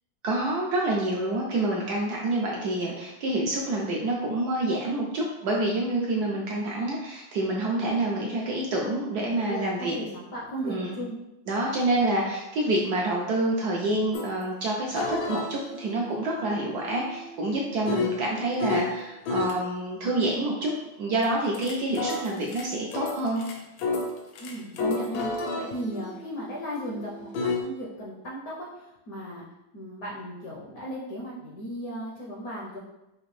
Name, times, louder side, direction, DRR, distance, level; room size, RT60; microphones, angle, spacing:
voice 1, 0.2-10.0 10.6-11.0 11.5-20.7 21.0-23.4, right 2 dB, 75° right, -2 dB, 0.9 m, -27 dB
voice 2, 9.3-11.1 24.4-25.3 25.6-29.4 29.7-32.8, equal, 65° left, -5 dB, 0.9 m, -36 dB
sound 1, 14.1-14.3 15.0-18.9 19.3-19.6 21.2-27.6, left 3 dB, 85° left, 1.4 m, -32 dB
4.9 x 2.5 x 3.1 m, 0.93 s
omnidirectional pair, 2.2 m